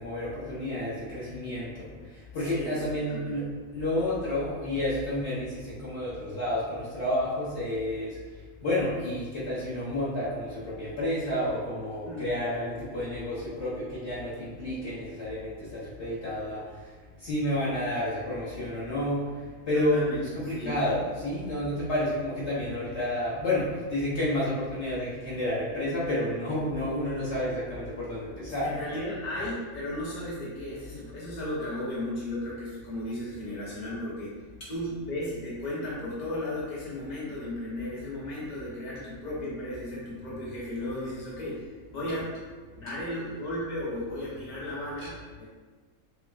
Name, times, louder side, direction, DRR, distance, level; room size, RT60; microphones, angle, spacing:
voice 1, 0.0-1.9 2.3-3.4 3.7-8.1 8.6-16.6 17.2-19.2 19.7-28.7, left 1 dB, 55° left, -9 dB, 1.1 m, -30 dB
voice 2, 2.4-3.3 12.0-12.3 19.7-20.7 28.4-34.3 34.7-41.6 41.9-42.3 42.7-45.4, left 1 dB, 35° left, -7 dB, 1.0 m, -35 dB
6.1 x 2.0 x 2.4 m, 1.4 s
omnidirectional pair, 1.5 m